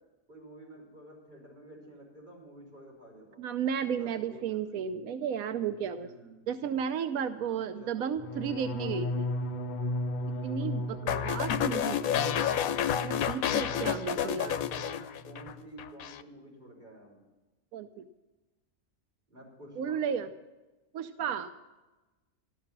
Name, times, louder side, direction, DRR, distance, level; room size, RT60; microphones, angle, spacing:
voice 1, 0.3-4.6 5.9-6.4 7.5-8.4 10.2-10.6 13.7-17.2 19.3-20.0, right 1 dB, 35° right, -4 dB, 6.0 m, -49 dB
voice 2, 3.4-6.1 6.5-9.3 10.4-12.5 13.0-14.6 17.7-18.1 19.8-20.3 20.9-21.5, right 7 dB, 90° right, 9 dB, 1.1 m, -33 dB
sound 1, 8.2-14.1 14.4-14.9 15.2-15.6, left 1 dB, 45° left, 0.6 m, -36 dB
sound 2, 11.1-15.5 15.8-16.2, left 9 dB, 80° left, 1.1 m, -30 dB
13.0 x 12.0 x 5.9 m, 1.1 s
omnidirectional pair, 1.5 m